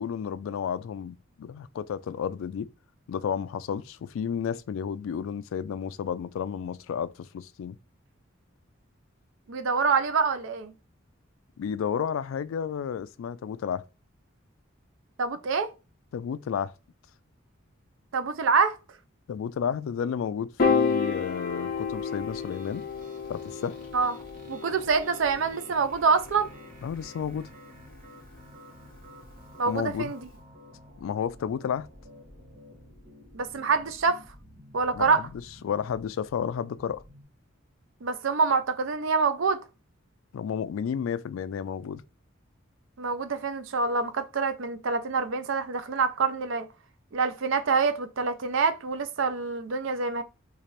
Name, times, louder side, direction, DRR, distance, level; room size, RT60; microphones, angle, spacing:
voice 1, 0.0-2.7 3.1-7.8 11.6-13.8 16.1-16.7 19.3-22.9 23.3-23.8 26.8-27.5 29.7-30.1 31.0-31.9 34.9-35.3 35.6-37.0 40.3-42.0, left 7 dB, 80° left, 0.3 m, -32 dB
voice 2, 9.5-10.7 15.2-15.7 18.1-18.8 23.9-24.2 24.5-26.5 29.6-30.3 33.3-34.2 34.7-35.2 38.0-39.6 43.0-46.7 47.1-50.2, right 4 dB, 70° right, 0.5 m, -26 dB
Piano, 20.6-27.0, left 5 dB, 45° left, 0.7 m, -30 dB
sound 1, 21.4-37.2, equal, 40° right, 0.9 m, -50 dB
3.2 x 2.4 x 4.2 m
head